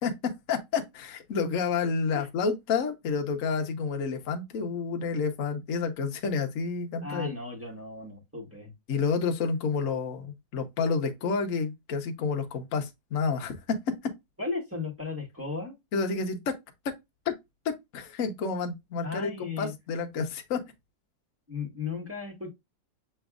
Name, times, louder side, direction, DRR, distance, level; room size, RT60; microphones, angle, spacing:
voice 1, 0.0-7.3 8.9-14.1 15.9-16.5 17.3-17.4 17.6-20.6, left 5 dB, 55° left, 1.1 m, -29 dB
voice 2, 7.0-8.7 14.4-15.7 19.0-19.7 21.5-22.5, left 4 dB, 10° right, 1.5 m, -35 dB
7.0 x 3.2 x 2.4 m
omnidirectional pair, 2.0 m